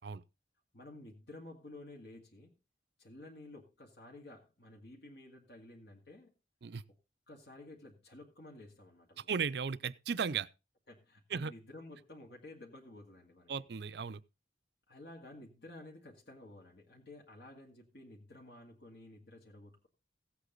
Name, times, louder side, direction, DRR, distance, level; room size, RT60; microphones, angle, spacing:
voice 1, 0.7-2.5 3.0-6.3 6.9-7.0 7.3-9.3 10.9-13.5 14.9-19.9, left 2 dB, 65° left, 2.2 m, -53 dB
voice 2, 9.3-10.5 11.3-11.5 13.5-14.2, right 6 dB, 60° right, 0.5 m, -36 dB
16.0 x 8.2 x 3.9 m
head